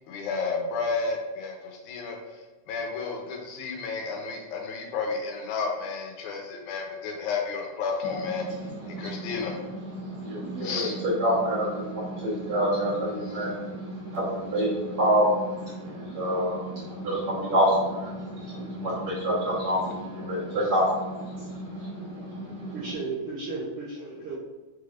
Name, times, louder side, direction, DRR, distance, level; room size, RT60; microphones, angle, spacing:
voice 1, 0.1-2.2 2.7-8.5 8.9-9.6 10.6-11.0, left 4 dB, 85° left, 1 dB, 2.2 m, -31 dB
voice 2, 8.1-23.0, equal, 55° right, -10 dB, 2.0 m, -28 dB
voice 3, 22.7-24.4, right 3 dB, 80° right, -7 dB, 1.2 m, -34 dB
5.3 x 3.3 x 2.4 m, 1.1 s
omnidirectional pair, 3.4 m